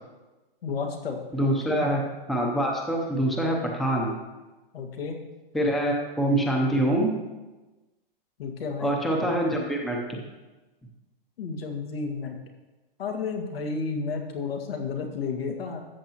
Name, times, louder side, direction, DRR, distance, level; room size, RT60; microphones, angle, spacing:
voice 1, 0.6-1.9 4.7-5.2 8.4-9.0 11.4-12.4 13.0-15.8, left 5 dB, 85° left, 2 dB, 1.9 m, -32 dB
voice 2, 1.3-2.0 2.3-4.2 5.5-7.1 8.8-10.2, right 1 dB, ahead, 0 dB, 0.6 m, -25 dB
13.5 x 7.9 x 3.0 m, 1.1 s
hypercardioid pair, 160°, 29 cm